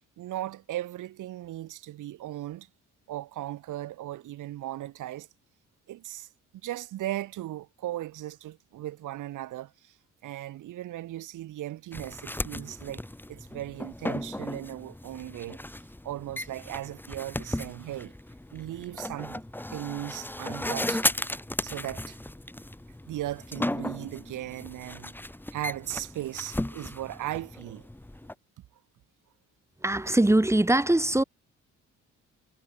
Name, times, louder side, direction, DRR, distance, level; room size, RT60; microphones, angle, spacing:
voice 1, 0.2-2.7 3.1-5.3 5.9-6.3 6.6-9.9 10.2-13.0 13.3-15.6 16.0-18.1 18.5-19.4 19.7-21.1 21.6-22.2 23.1-25.1 25.5-27.9, right 14 dB, 85° right, 6.0 m, -37 dB
sound 1, 11.9-28.3, left 1 dB, 5° left, 2.6 m, -35 dB
voice 2, 29.8-31.2, right 1 dB, 10° right, 2.4 m, -22 dB
cardioid pair, 90°, 30 cm